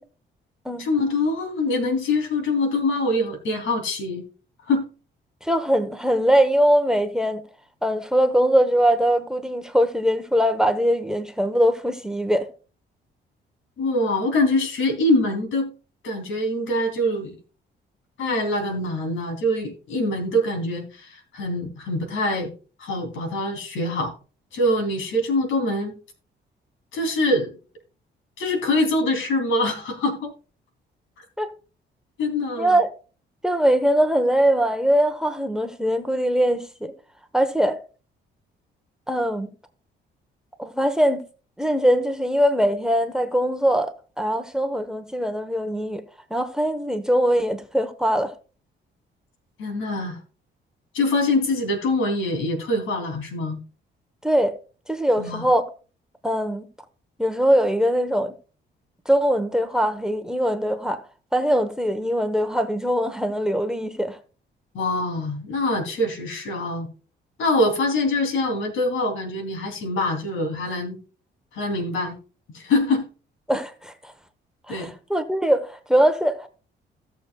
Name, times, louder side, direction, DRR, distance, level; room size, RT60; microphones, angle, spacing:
voice 1, 0.8-4.2 4.6-4.9 13.8-15.7 16.0-17.4 18.2-22.5 22.8-24.1 24.5-26.0 26.9-27.5 28.4-30.3 32.2-32.8 49.6-50.2 50.9-53.6 55.2-55.4 64.7-66.9 67.4-71.0 71.5-72.2 72.5-73.1 74.7-74.9, left 2 dB, 80° left, 3.0 m, -24 dB
voice 2, 5.4-7.4 7.8-12.5 31.4-31.5 32.6-32.9 33.4-36.9 37.3-37.8 39.1-39.5 40.6-41.2 41.6-43.9 44.2-46.0 46.3-48.3 54.2-54.5 54.9-55.6 56.2-56.7 57.2-58.3 59.1-61.0 61.3-64.2 73.5-74.1 74.7-76.5, equal, 5° right, 1.0 m, -21 dB
16.5 x 6.8 x 2.3 m
cardioid pair, 90°, 20 cm